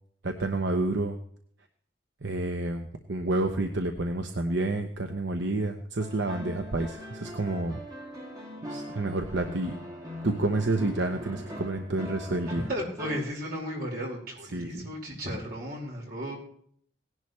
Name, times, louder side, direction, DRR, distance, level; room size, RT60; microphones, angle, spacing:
voice 1, 0.2-1.2 2.2-7.8 8.7-9.7 10.2-12.6 14.5-14.9, right 2 dB, 75° right, 5 dB, 0.9 m, -29 dB
sound 1, 6.0-13.2, left 1 dB, 20° right, 2.6 m, -41 dB
voice 2, 12.5-16.4, equal, 50° right, -2 dB, 4.8 m, -34 dB
17.5 x 11.0 x 3.2 m, 0.63 s
head